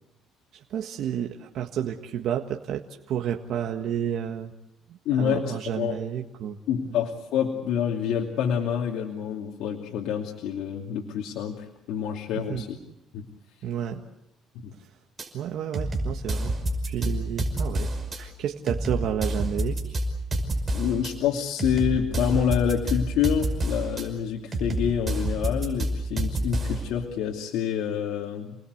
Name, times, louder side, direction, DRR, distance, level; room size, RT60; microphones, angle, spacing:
voice 1, 0.7-4.5 5.1-6.6 6.8-6.9 12.4-12.7 13.6-14.0 15.3-16.5 16.9-17.9 18.2-20.0, right 9 dB, 65° right, 3 dB, 1.6 m, -31 dB
voice 2, 5.0-6.0 6.7-12.8 13.1-13.3 14.5-14.7 20.7-28.6, left 8 dB, 85° left, 0 dB, 2.7 m, -27 dB
sound 1, 15.2-15.3 15.7-18.2 18.7-21.1 21.6-24.0 24.5-26.9, right 1 dB, 25° right, 5.6 m, -28 dB
30.0 x 20.5 x 8.1 m, 0.88 s
cardioid pair, 130°, 0 cm